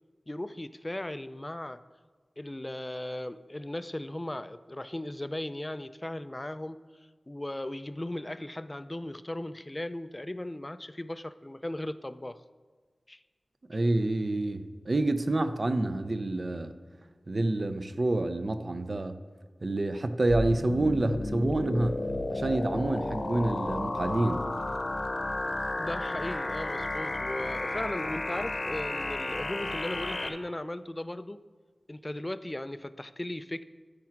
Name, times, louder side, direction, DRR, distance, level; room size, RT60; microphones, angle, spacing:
voice 1, 0.3-1.8 2.4-6.9 7.3-12.4 13.1-13.2 25.8-31.4 31.9-33.6, left 1 dB, 25° left, 0.4 m, -37 dB
voice 2, 13.7-16.7 17.3-19.2 19.6-22.0 22.3-24.4, right 2 dB, 50° right, 0.6 m, -28 dB
sound 1, 20.3-30.3, left 2 dB, 55° left, 0.9 m, -33 dB
13.5 x 4.8 x 5.8 m
wide cardioid pair, 60°, 0 cm